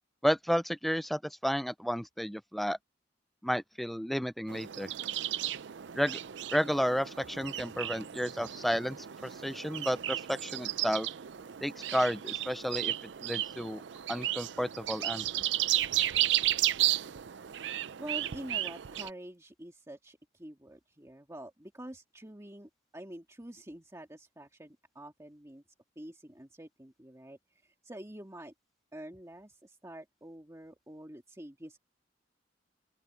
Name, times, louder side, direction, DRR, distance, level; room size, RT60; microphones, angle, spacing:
voice 1, 0.2-2.8 3.4-4.9 6.0-6.2 6.5-9.0 9.2-11.1 11.6-12.9 13.2-13.8 14.1-15.4, equal, ahead, 0.3 m, -32 dB
sound 1, 4.5-19.1, right 13 dB, 70° right, 0.5 m, -34 dB
voice 2, 18.0-25.6 26.0-28.5 28.9-31.8, right 1 dB, 15° right, 1.9 m, -47 dB
open air
head